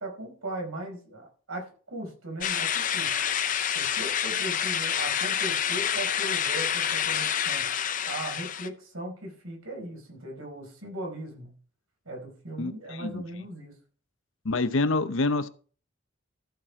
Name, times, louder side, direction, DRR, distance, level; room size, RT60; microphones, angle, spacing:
voice 1, 0.0-3.1 3.7-11.5 12.0-13.7, right 1 dB, 85° right, 4.9 m, -38 dB
sound 1, 2.4-8.7, left 9 dB, 40° left, 0.6 m, -28 dB
voice 2, 12.6-13.2 14.4-15.5, left 2 dB, 70° left, 0.8 m, -27 dB
14.0 x 5.8 x 4.9 m
head